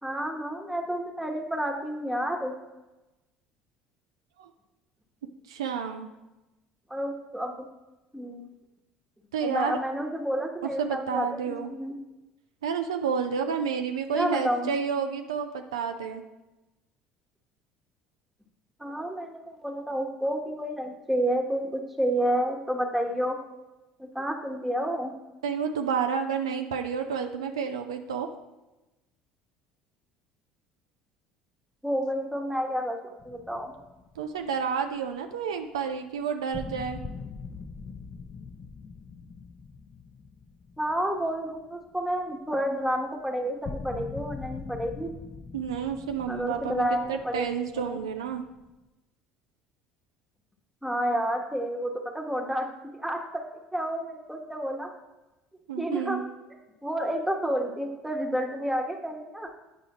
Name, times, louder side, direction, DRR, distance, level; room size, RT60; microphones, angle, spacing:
voice 1, 0.0-2.5 6.9-7.7 8.1-8.4 9.4-12.0 14.1-14.7 18.8-23.4 24.0-25.1 31.8-33.0 33.2-33.7 40.8-45.1 46.3-47.4 47.8-48.0 50.8-52.7 52.9-53.4 53.7-54.9 55.8-56.2 56.5-59.5, equal, 5° right, 2 dB, 1.2 m, -30 dB
voice 2, 5.5-6.1 9.3-9.8 10.6-11.7 12.6-16.2 25.4-28.3 34.2-37.0 45.5-48.4 55.7-56.2, right 6 dB, 90° right, 6 dB, 0.4 m, -30 dB
sound 1, 33.2-34.6 34.9-35.0 35.9-36.0 36.5-41.8 42.2-42.3 42.8-42.9 43.6-48.8, left 5 dB, 35° left, 0.5 m, -42 dB
8.7 x 4.8 x 3.0 m, 1.0 s
hypercardioid pair, 70°, 3 cm